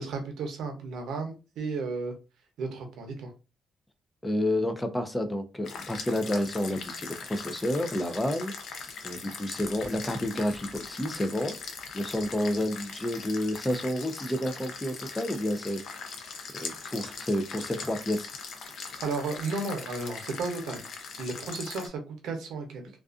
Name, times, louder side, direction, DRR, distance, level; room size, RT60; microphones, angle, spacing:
voice 1, 0.0-2.1 2.6-3.3 19.0-20.8 21.2-22.9, right 3 dB, 80° right, 4 dB, 0.7 m, -33 dB
voice 2, 4.2-8.5 9.0-11.5 11.9-15.8 16.5-18.3, left 1 dB, 10° left, 8 dB, 0.4 m, -30 dB
sound 1, 5.6-21.9, left 5 dB, 70° left, 0.5 m, -41 dB
2.4 x 2.4 x 2.4 m, 0.31 s
cardioid pair, 90°, 0 cm